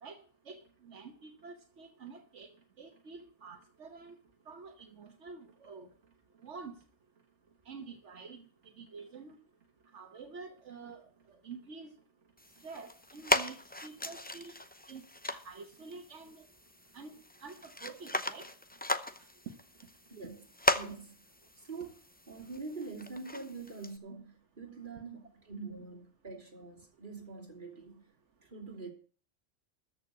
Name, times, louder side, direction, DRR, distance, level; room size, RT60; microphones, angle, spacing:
voice 1, 0.4-2.5 2.8-4.1 4.5-5.9 6.4-6.7 7.7-8.5 8.8-9.3 9.9-11.9 12.6-13.6 13.8-14.5 14.9-16.5 16.9-17.1 17.4-18.5, right 4 dB, 80° right, 4 dB, 1.5 m, -48 dB
sound 1, 12.4-24.0, left 1 dB, 10° left, 0.6 m, -37 dB
voice 2, 20.1-20.4 20.7-21.1 21.6-28.0 28.4-28.9, right 4 dB, 45° right, -2 dB, 3.2 m, -45 dB
13.5 x 5.8 x 8.2 m, 0.42 s
omnidirectional pair, 1.2 m